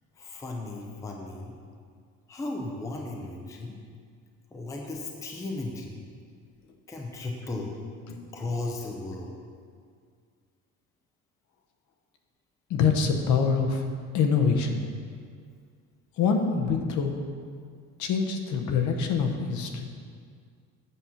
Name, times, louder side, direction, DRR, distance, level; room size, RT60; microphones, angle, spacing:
voice 1, 0.2-1.6 2.3-3.8 4.5-6.0 6.9-7.7 8.3-9.3, left 2 dB, 10° left, 1 dB, 0.5 m, -35 dB
voice 2, 12.7-13.8 14.1-14.8 16.2-17.2 18.0-19.8, left 5 dB, 60° left, 4 dB, 0.9 m, -25 dB
8.5 x 6.0 x 5.7 m, 2.1 s
cardioid pair, 175°, 33 cm